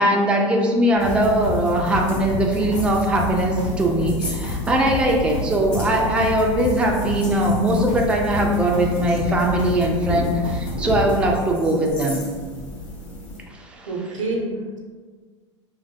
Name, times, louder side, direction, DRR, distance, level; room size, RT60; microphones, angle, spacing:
voice 1, 0.0-12.2 13.6-13.9, right 1 dB, 5° right, 0 dB, 0.4 m, -20 dB
sound 1, 0.9-11.3, left 2 dB, 85° left, 0.7 m, -30 dB
sound 2, 1.1-13.4, left 1 dB, 50° left, 1.3 m, -35 dB
voice 2, 13.9-14.8, right 2 dB, 85° right, 0 dB, 0.6 m, -27 dB
3.2 x 2.1 x 2.8 m, 1.5 s
hypercardioid pair, 90°, 16 cm